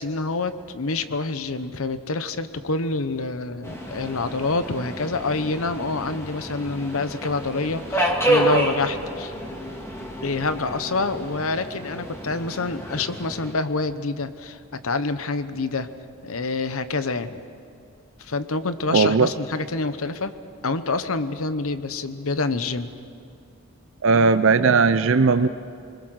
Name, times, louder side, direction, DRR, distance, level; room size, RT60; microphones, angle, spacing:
voice 1, 0.0-9.3 10.2-15.9 16.2-17.4 18.2-20.3 20.6-22.9, left 3 dB, 70° left, 11 dB, 1.0 m, -27 dB
Subway metro underground, 3.6-13.5, right 1 dB, 10° left, 2.3 m, -29 dB
voice 2, 18.9-19.3 24.0-25.5, right 4 dB, 60° right, 11 dB, 0.5 m, -17 dB
26.5 x 21.5 x 6.4 m, 2.5 s
head